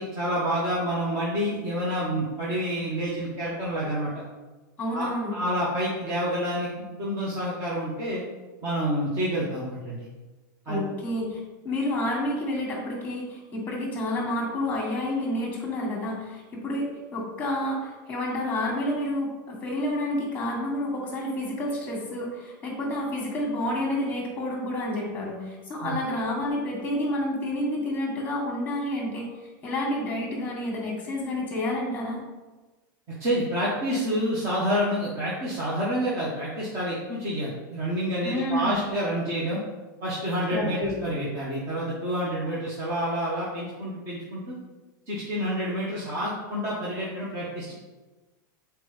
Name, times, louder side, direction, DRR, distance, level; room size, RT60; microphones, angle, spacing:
voice 1, 0.0-4.2 4.9-8.2 8.6-10.1 10.7-10.9 25.8-26.0 33.2-39.6 40.0-44.5 45.1-47.7, equal, 25° right, -6 dB, 1.3 m, -28 dB
voice 2, 4.8-5.4 10.7-16.9 17.1-32.2 38.2-38.8 40.5-41.0, left 1 dB, 15° left, -1 dB, 1.8 m, -29 dB
7.4 x 4.5 x 3.5 m, 1.2 s
supercardioid pair, 165°, 11 cm